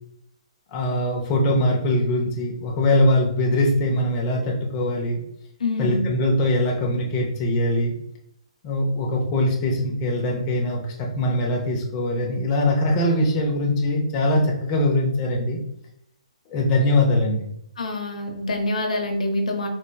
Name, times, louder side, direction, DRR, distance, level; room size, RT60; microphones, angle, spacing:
voice 1, 0.7-5.2 5.8-7.9 8.6-15.6 16.5-17.5, left 1 dB, 25° left, -1 dB, 0.7 m, -22 dB
voice 2, 5.6-6.0 17.8-19.7, left 2 dB, 80° left, 3 dB, 0.9 m, -26 dB
4.2 x 3.1 x 2.2 m, 0.76 s
hypercardioid pair, 150°, 4 cm